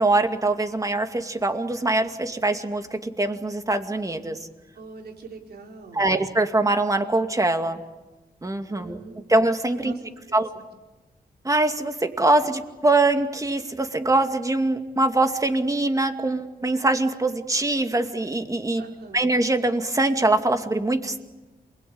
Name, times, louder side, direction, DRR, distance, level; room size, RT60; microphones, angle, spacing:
voice 1, 0.0-4.4 5.9-7.8 8.4-9.0 9.3-9.9 10.3-10.5 11.4-18.8 19.1-21.2, right 2 dB, 20° right, 6 dB, 2.4 m, -23 dB
voice 2, 4.7-6.3 8.7-9.3 9.8-10.6 18.8-19.2, right 4 dB, 80° right, 1 dB, 4.9 m, -43 dB
28.0 x 21.5 x 8.7 m, 1.1 s
cardioid pair, 90°, 16 cm